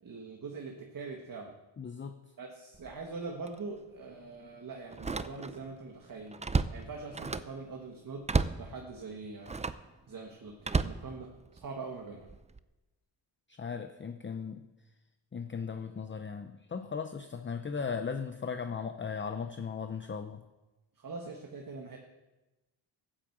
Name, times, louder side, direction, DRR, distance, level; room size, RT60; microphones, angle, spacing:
voice 1, 0.0-1.5 2.4-6.4 6.7-8.2 8.6-9.6 10.1-10.5 10.8-12.3 21.0-22.0, right 4 dB, 45° right, 1 dB, 1.5 m, -43 dB
voice 2, 1.8-2.2 13.6-14.6 15.3-20.4, left 6 dB, 25° left, 8 dB, 0.6 m, -37 dB
Slam, 2.7-3.0 3.5-3.6 4.9-5.7 6.1-7.6 8.2-8.7 9.4-9.9 10.6-11.7 12.3-12.6, right 4 dB, 15° right, 0.4 m, -32 dB
13.5 x 8.9 x 7.8 m, 1.1 s
wide cardioid pair, 125°, 47 cm